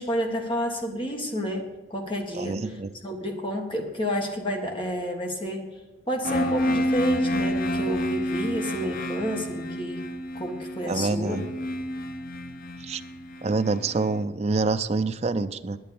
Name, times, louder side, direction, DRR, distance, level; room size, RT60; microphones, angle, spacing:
voice 1, 0.0-1.6 1.9-2.7 3.0-5.6 6.1-10.0 10.3-11.4, equal, 25° left, 2 dB, 1.6 m, -30 dB
voice 2, 2.3-2.9 10.9-11.5 12.8-13.0 13.4-15.8, right 3 dB, 35° right, 11 dB, 0.5 m, -26 dB
sound 1, 6.2-14.1, equal, 45° left, 0.9 m, -29 dB
10.0 x 9.6 x 6.9 m, 1.2 s
head